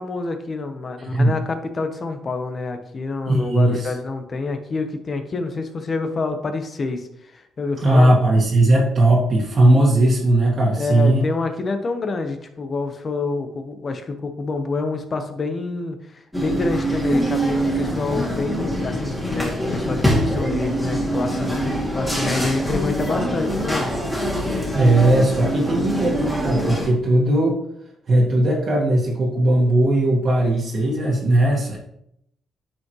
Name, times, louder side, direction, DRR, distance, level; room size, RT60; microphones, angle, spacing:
voice 1, 0.0-8.1 10.8-23.9, left 3 dB, 40° left, 7 dB, 1.1 m, -27 dB
voice 2, 1.0-1.3 3.3-3.9 7.8-11.2 24.7-27.6 28.1-31.8, right 1 dB, 50° right, -4 dB, 1.9 m, -18 dB
sound 1, 16.3-26.9, equal, 5° left, 2.7 m, -24 dB
9.1 x 5.5 x 3.2 m, 0.76 s
cardioid pair, 90°, 0 cm